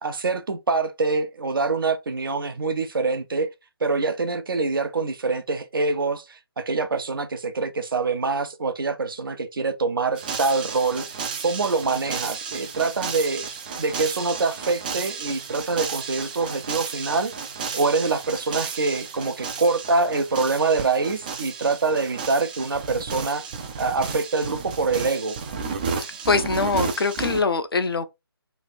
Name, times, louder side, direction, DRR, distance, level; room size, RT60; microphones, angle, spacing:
voice 1, 0.0-3.5 3.8-11.0 11.4-13.5 13.8-17.3 17.7-23.4 23.8-25.4, right 4 dB, 60° right, 0.8 m, -25 dB
sound 1, 10.1-27.4, right 5 dB, 20° right, 0.4 m, -33 dB
voice 2, 26.3-28.1, left 4 dB, 65° left, 0.7 m, -23 dB
3.2 x 2.5 x 4.1 m
figure-of-eight pair, 150°, 13 cm